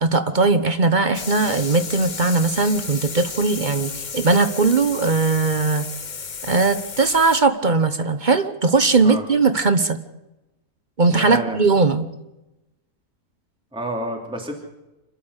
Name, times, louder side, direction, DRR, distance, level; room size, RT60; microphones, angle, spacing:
voice 1, 0.0-5.9 6.4-10.0 11.0-12.1, right 3 dB, 35° right, 10 dB, 1.0 m, -19 dB
sound 1, 1.1-7.4, left 5 dB, 35° left, 0.9 m, -33 dB
voice 2, 11.1-11.6 13.7-14.6, equal, 5° right, 0 dB, 2.9 m, -29 dB
26.5 x 12.5 x 8.2 m, 1.0 s
omnidirectional pair, 1.6 m